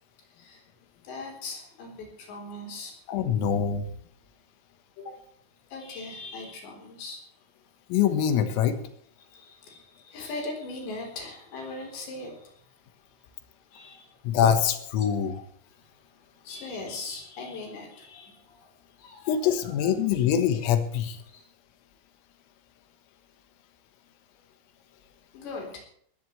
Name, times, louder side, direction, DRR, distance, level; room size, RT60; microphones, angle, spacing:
voice 1, 1.0-2.9 5.0-5.2 5.7-7.2 9.3-12.5 13.7-14.2 15.0-15.1 16.4-18.7 19.0-19.9 21.3-21.4 25.3-25.8, left 3 dB, 60° left, 2 dB, 5.9 m, -40 dB
voice 2, 3.1-3.9 7.9-8.8 14.3-15.4 19.3-21.2, left 8 dB, 85° left, 9 dB, 4.0 m, -24 dB
20.0 x 14.5 x 3.2 m, 0.63 s
omnidirectional pair, 5.9 m